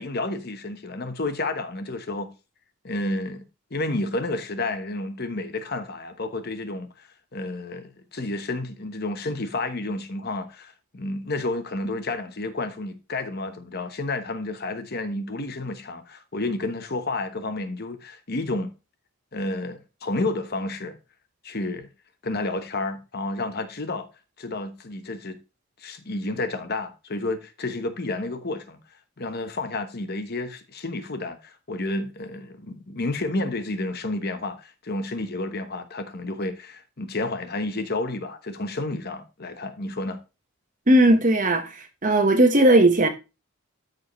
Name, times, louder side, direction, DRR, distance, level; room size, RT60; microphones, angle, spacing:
voice 1, 0.0-2.3 2.8-3.4 3.7-18.7 19.3-21.0 21.4-21.9 22.2-24.1 24.4-25.4 25.8-28.8 29.2-40.2, left 2 dB, 45° left, 1.1 m, -30 dB
voice 2, 40.9-41.7 42.0-43.1, right 1 dB, 40° right, 1.3 m, -17 dB
13.0 x 5.1 x 3.1 m
head